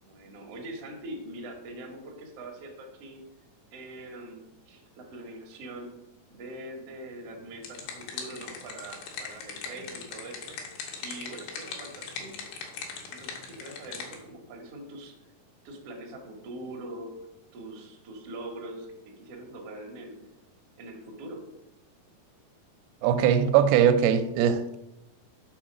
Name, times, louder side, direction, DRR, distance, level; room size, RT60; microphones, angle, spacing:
voice 1, 0.0-3.2 3.7-5.9 6.3-10.6 11.0-12.4 13.1-15.2 15.6-17.2 17.5-20.2 20.8-21.4, right 1 dB, 70° right, 1 dB, 1.4 m, -43 dB
sound 1, 7.3-14.2, left 5 dB, 85° left, 3.0 m, -40 dB
voice 2, 23.0-24.8, right 8 dB, 85° right, 9 dB, 2.4 m, -21 dB
6.2 x 3.9 x 6.0 m, 0.91 s
omnidirectional pair, 4.4 m